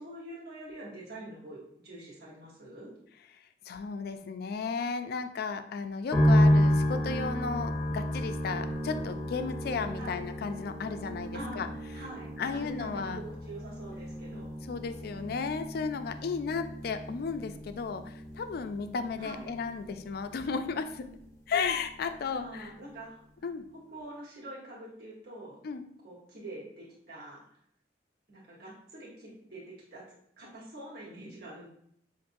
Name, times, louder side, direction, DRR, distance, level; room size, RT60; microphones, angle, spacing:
voice 1, 0.0-2.9 10.0-10.2 11.3-14.5 19.2-19.4 22.3-23.2 23.9-25.6 26.0-27.4 28.3-30.0 30.4-31.7, right 1 dB, 60° right, -7 dB, 1.3 m, -45 dB
voice 2, 3.7-11.7 12.4-13.2 14.3-21.1 21.5-22.7 23.4-23.6 25.6-25.8, left 5 dB, 60° left, 8 dB, 0.3 m, -34 dB
sound 1, 6.1-21.4 21.6-22.5, equal, 15° left, 0.7 m, -31 dB
5.9 x 2.6 x 2.6 m, 0.69 s
head